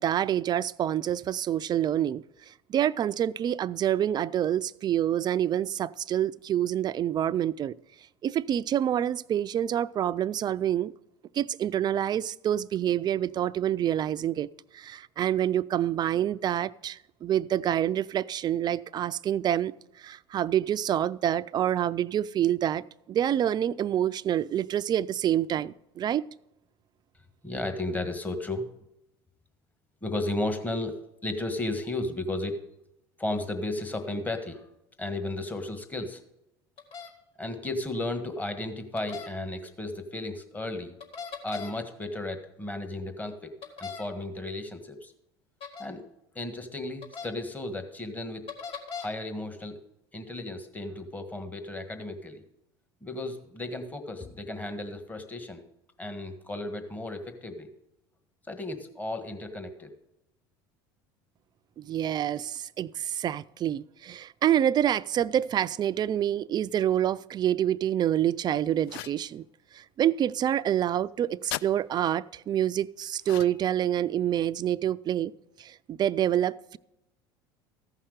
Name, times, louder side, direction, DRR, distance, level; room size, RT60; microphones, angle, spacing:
voice 1, 0.0-7.7 8.2-10.9 11.3-14.5 14.7-26.2 61.8-69.4 69.7-75.3 75.6-76.8, right 11 dB, 35° right, 0.4 m, -27 dB
voice 2, 27.4-28.7 30.0-30.9 31.2-32.6 33.2-34.7 35.0-36.2 37.4-40.9 41.4-45.1 45.8-46.0 46.3-48.5 48.9-49.8 50.1-52.4 53.0-55.6 56.0-57.7 58.5-59.9, left 2 dB, 15° left, 1.4 m, -34 dB
sound 1, 36.8-37.1 39.0-39.3 41.0-41.7 43.6-44.0 45.6-45.9 47.0-47.3 48.5-49.1, left 6 dB, 50° left, 2.0 m, -38 dB
sound 2, 68.8-69.2 71.5-71.7 73.2-73.7, left 15 dB, 75° left, 0.4 m, -36 dB
14.5 x 5.7 x 6.5 m
hypercardioid pair, 90°, 12 cm